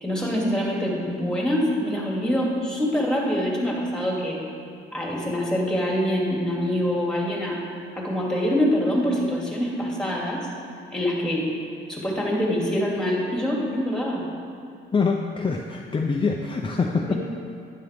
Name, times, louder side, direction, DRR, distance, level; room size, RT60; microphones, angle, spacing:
voice 1, 0.0-4.4 4.9-7.6 8.0-10.4 10.9-11.5 11.9-14.2 17.1-17.2, equal, 5° left, -3 dB, 2.7 m, -25 dB
voice 2, 14.9-17.1, left 4 dB, 25° left, 1 dB, 0.7 m, -24 dB
11.5 x 9.4 x 3.6 m, 2.6 s
cardioid pair, 90°, 20 cm